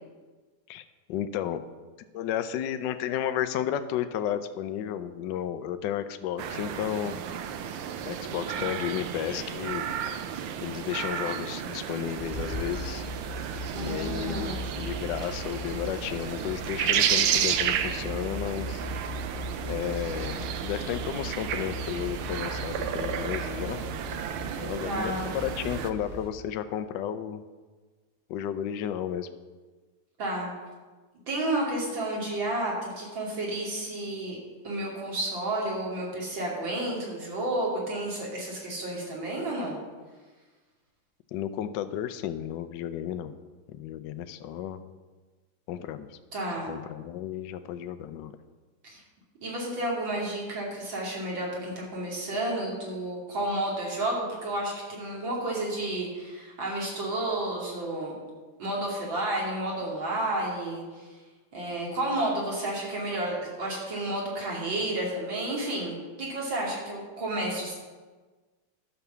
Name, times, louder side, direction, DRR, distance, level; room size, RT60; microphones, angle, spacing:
voice 1, 0.7-1.6 2.1-7.2 8.1-9.9 10.6-13.0 13.8-18.8 19.7-23.8 24.6-27.4 28.3-29.3 41.3-43.4 43.7-44.8 45.7-46.2 46.6-48.4, left 10 dB, 75° left, 10 dB, 1.1 m, -33 dB
sound 1, 6.4-25.9, right 9 dB, 80° right, 1.6 m, -32 dB
sound 2, 12.2-26.3, equal, 5° right, 1.7 m, -39 dB
voice 2, 13.7-14.6 24.9-25.3 30.2-30.5 31.3-34.4 34.6-39.8 46.3-46.7 48.8-49.0 49.4-58.1 58.6-61.1 61.5-67.8, right 1 dB, 60° right, -3 dB, 3.2 m, -31 dB
11.5 x 5.6 x 6.8 m, 1.3 s
omnidirectional pair, 2.4 m